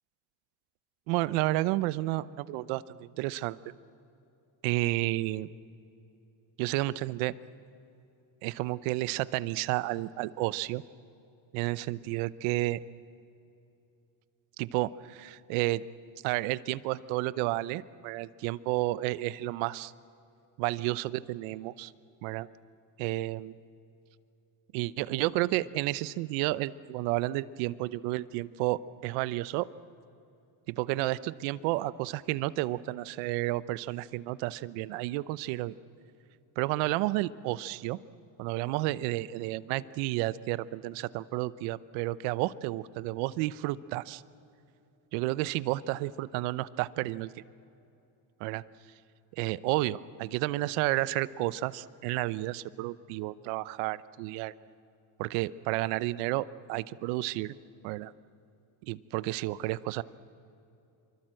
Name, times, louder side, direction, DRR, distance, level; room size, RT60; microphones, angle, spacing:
voice 1, 1.1-3.7 4.6-5.5 6.6-7.3 8.4-10.8 11.5-12.8 14.6-15.8 16.2-19.9 20.6-21.9 22.2-22.5 23.0-23.5 24.7-29.7 30.7-35.7 36.6-38.0 38.4-44.2 45.1-47.4 48.4-48.6 49.3-54.5 55.2-57.5 57.8-58.1 58.8-60.0, right 17 dB, 85° right, 17 dB, 0.8 m, -31 dB
25.5 x 23.5 x 7.7 m, 2.7 s
cardioid pair, 140°, 46 cm